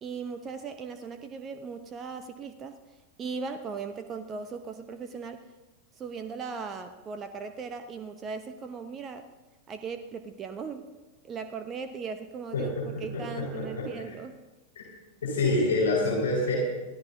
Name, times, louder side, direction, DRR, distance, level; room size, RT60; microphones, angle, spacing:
voice 1, 0.0-2.8 3.2-5.4 6.0-9.3 9.7-10.9 11.2-12.7 13.0-14.4, right 5 dB, 25° right, 8 dB, 0.8 m, -38 dB
voice 2, 12.5-14.1 15.2-16.5, left 2 dB, 65° left, -4 dB, 4.8 m, -27 dB
24.0 x 16.0 x 2.7 m, 1.2 s
figure-of-eight pair, 90°, 0 cm